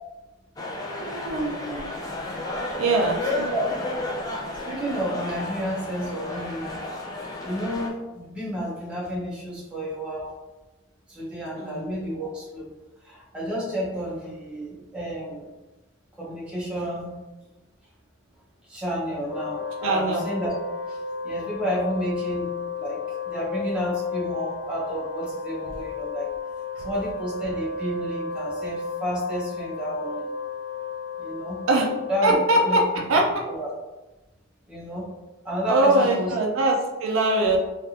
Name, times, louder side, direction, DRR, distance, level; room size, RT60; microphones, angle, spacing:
sound 1, 0.6-7.9, left 1 dB, 15° left, 0.4 m, -32 dB
voice 1, 0.9-1.8 2.8-3.2 11.6-11.9 19.8-20.2 26.8-26.9 31.7-31.9 32.2-33.2 35.7-37.6, right 2 dB, 65° right, 0 dB, 0.4 m, -22 dB
voice 2, 4.7-6.8 7.4-10.3 11.1-12.7 13.0-15.5 16.2-17.1 18.6-20.6 20.9-21.0 21.2-22.5 22.8-26.3 26.8-30.3 31.2-31.6 32.1-33.0 33.5-33.7 34.7-35.1 35.4-36.3 37.4-37.5, equal, 5° right, -7 dB, 0.8 m, -30 dB
Wind instrument woodwind instrument, 19.2-32.6, left 4 dB, 75° left, 0.6 m, -33 dB
3.3 x 2.4 x 2.8 m, 1.1 s
head